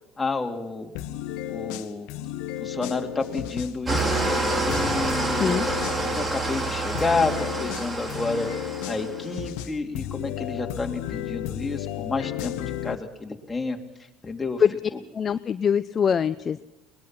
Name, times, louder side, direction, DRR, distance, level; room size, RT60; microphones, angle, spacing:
voice 1, 0.2-0.9 1.5-2.1 2.6-5.7 6.0-8.5 8.8-13.8 14.2-14.6 14.9-15.0, left 3 dB, 20° left, 2 dB, 2.8 m, -30 dB
sound 1, 1.0-6.3 7.0-13.0, left 12 dB, 70° left, 1.1 m, -33 dB
Engine starting / Idling, 3.9-9.3, right 2 dB, 25° right, 4.4 m, -27 dB
voice 2, 15.1-16.6, left 7 dB, 40° left, 12 dB, 0.6 m, -23 dB
22.0 x 20.0 x 5.9 m, 1.0 s
hypercardioid pair, 70°, 0 cm